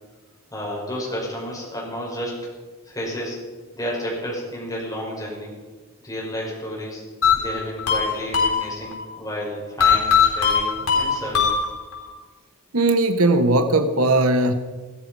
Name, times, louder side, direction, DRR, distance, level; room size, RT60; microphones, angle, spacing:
voice 1, 0.5-2.4 2.9-3.4 3.7-5.5 6.0-7.0 7.3-11.6, equal, 15° left, -4 dB, 5.2 m, -31 dB
sound 1, 7.2-9.0 9.8-12.1, left 6 dB, 85° left, 3.9 m, -20 dB
voice 2, 12.7-14.5, right 2 dB, 80° right, 9 dB, 1.1 m, -18 dB
15.0 x 14.0 x 5.4 m, 1.3 s
head